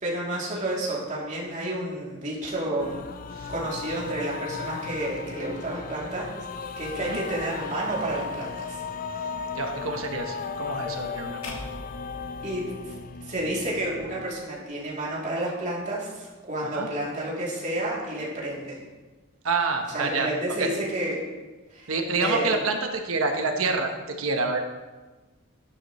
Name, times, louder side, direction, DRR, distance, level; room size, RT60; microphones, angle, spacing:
voice 1, 0.0-2.9 3.5-6.3 6.8-8.8 12.4-12.9 13.2-18.8 19.9-21.2 21.7-21.9 22.2-22.5, right 1 dB, 35° right, -6 dB, 3.0 m, -30 dB
sound 1, 2.8-14.3, left 5 dB, 40° left, 0.4 m, -36 dB
voice 2, 9.5-11.6 16.7-16.9 19.4-20.3 20.6-20.7 21.9-24.6, right 3 dB, 75° right, 4 dB, 1.1 m, -27 dB
sound 2, 11.4-13.7, left 1 dB, 80° left, 1.7 m, -42 dB
12.0 x 11.0 x 3.1 m, 1.2 s
head